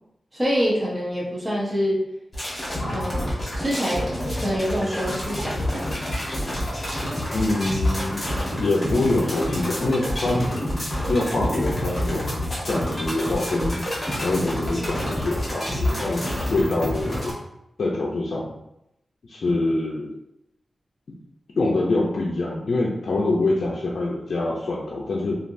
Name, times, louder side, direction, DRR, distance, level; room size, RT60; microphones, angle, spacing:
voice 1, 0.3-2.0 2.9-5.9, equal, 15° right, -5 dB, 0.8 m, -26 dB
sound 1, 2.3-17.3, left 1 dB, 25° left, 1.2 m, -28 dB
voice 2, 7.3-8.2 8.6-10.5 11.1-13.8 14.2-17.3 17.8-18.5 19.3-20.1 21.6-25.4, left 2 dB, 70° left, -4 dB, 0.5 m, -25 dB
3.2 x 2.5 x 2.6 m, 0.83 s
wide cardioid pair, 145°, 0 cm